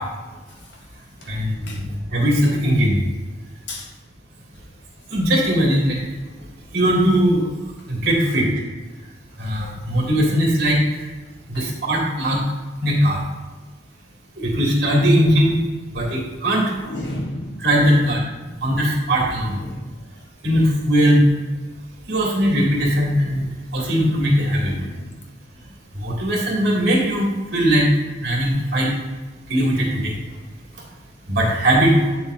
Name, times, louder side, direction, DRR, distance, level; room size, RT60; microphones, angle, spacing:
voice 1, 1.3-1.7 2.1-3.0 5.1-6.0 6.7-7.4 7.9-8.5 9.4-10.8 11.5-12.4 12.8-13.2 14.4-15.6 15.9-16.7 17.6-18.2 18.6-19.5 20.4-21.2 22.1-23.4 23.7-24.7 26.0-27.9 28.2-28.9 29.5-30.1 31.3-31.9, equal, 60° right, -3 dB, 2.2 m, -19 dB
voice 2, 16.8-18.2 19.4-20.0 24.7-25.2 32.0-32.2, left 1 dB, 65° left, 1 dB, 1.2 m, -33 dB
8.4 x 7.2 x 2.6 m, 1.2 s
head